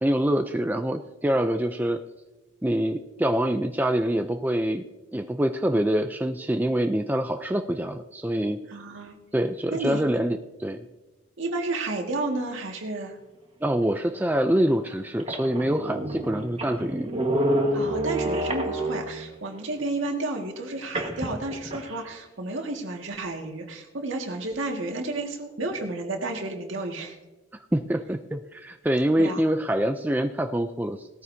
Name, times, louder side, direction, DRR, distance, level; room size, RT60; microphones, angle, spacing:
voice 1, 0.0-2.0 2.6-4.8 5.1-8.6 9.3-10.8 13.6-17.1 27.7-31.2, right 1 dB, 10° right, 6 dB, 0.4 m, -25 dB
voice 2, 8.7-9.2 9.7-10.0 11.4-13.2 17.7-27.2 29.2-29.4, right 2 dB, 70° right, 2 dB, 1.9 m, -31 dB
sound 1, 14.2-14.3 14.9-15.0 15.2-19.3 20.9-22.0, right 1 dB, 30° right, 1.4 m, -28 dB
18.0 x 13.5 x 2.7 m, 1.1 s
head